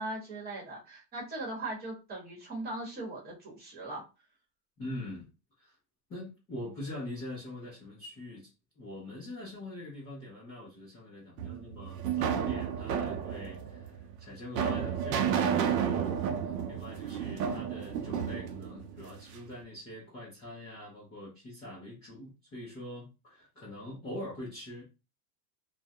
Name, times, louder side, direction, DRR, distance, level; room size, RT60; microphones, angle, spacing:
voice 1, 0.0-4.0, right 2 dB, 20° right, -2 dB, 0.9 m, -39 dB
voice 2, 4.8-5.3 5.6-5.7 6.1-8.5 8.8-13.9 14.2-24.8, left 1 dB, 15° left, -9 dB, 0.3 m, -43 dB
sound 1, 11.4-19.5, right 8 dB, 80° right, 0.6 m, -32 dB
2.3 x 2.1 x 2.6 m, 0.29 s
supercardioid pair, 155°, 48 cm